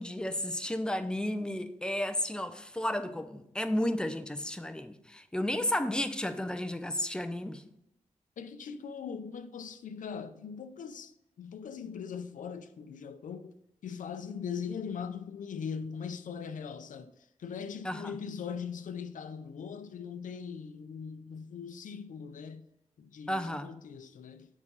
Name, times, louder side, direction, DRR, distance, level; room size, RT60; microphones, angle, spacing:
voice 1, 0.0-7.6 17.8-18.2 23.3-23.7, left 1 dB, 5° left, 0.6 m, -33 dB
voice 2, 8.4-11.1 11.4-13.5 13.8-17.1 17.4-22.7 23.0-24.5, left 6 dB, 85° left, 0.5 m, -40 dB
7.0 x 4.9 x 5.4 m
wide cardioid pair, 95°, 13 cm